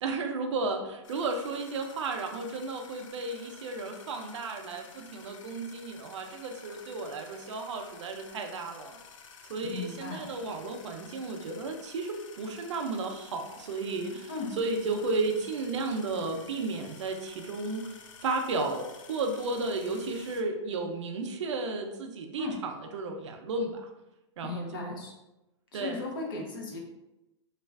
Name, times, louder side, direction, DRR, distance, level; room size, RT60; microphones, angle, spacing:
voice 1, 0.0-9.0 9.5-23.9 24.4-24.9 25.7-26.0, right 3 dB, 70° right, 4 dB, 0.5 m, -33 dB
sound 1, 1.0-20.4, left 6 dB, 90° left, 0.5 m, -52 dB
voice 2, 9.6-10.3 14.3-14.5 22.4-22.6 24.4-25.1 25.7-26.8, left 3 dB, 45° left, 0 dB, 0.6 m, -36 dB
3.1 x 2.4 x 2.3 m, 0.96 s
supercardioid pair, 180°, 16 cm